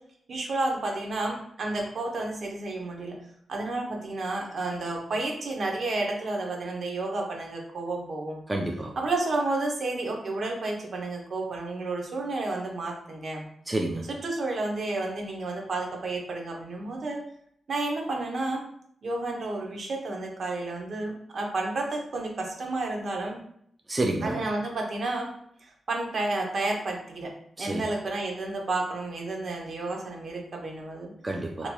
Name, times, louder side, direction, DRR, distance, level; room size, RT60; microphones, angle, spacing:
voice 1, 0.3-3.2 3.5-8.4 9.0-13.4 14.1-17.2 17.7-18.6 19.0-23.4 24.2-25.3 25.6-27.3 27.6-31.1 31.6-31.7, right 2 dB, 60° right, 0 dB, 0.8 m, -31 dB
voice 2, 8.5-8.9 13.7-14.1 23.9-24.4 27.6-27.8 31.2-31.7, right 2 dB, 25° right, 1 dB, 0.4 m, -29 dB
2.9 x 2.8 x 2.2 m, 0.70 s
cardioid pair, 55°, 0 cm